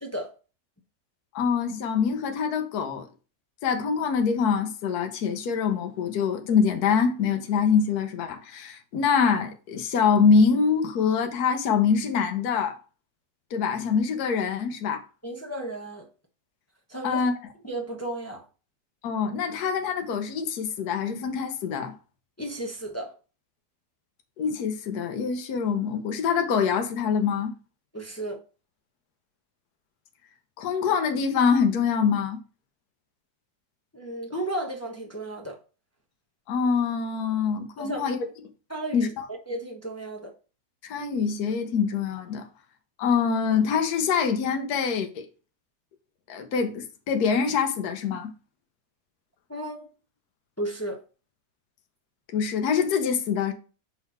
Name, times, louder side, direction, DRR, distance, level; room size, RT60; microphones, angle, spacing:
voice 1, 1.3-3.1 3.6-12.8 13.5-15.0 17.0-17.3 19.0-21.9 24.4-27.5 30.6-32.4 36.5-38.2 38.9-39.3 40.8-42.5 43.0-45.2 46.3-48.3 52.3-53.5, left 6 dB, 65° left, 1.3 m, -24 dB
voice 2, 15.2-16.1 16.9-17.2 17.6-18.4 22.4-23.1 27.9-28.4 33.9-35.6 37.8-38.0 38.7-40.3 49.5-49.9 50.6-51.0, right 1 dB, 20° left, 0.4 m, -34 dB
5.9 x 3.9 x 4.2 m
omnidirectional pair, 1.9 m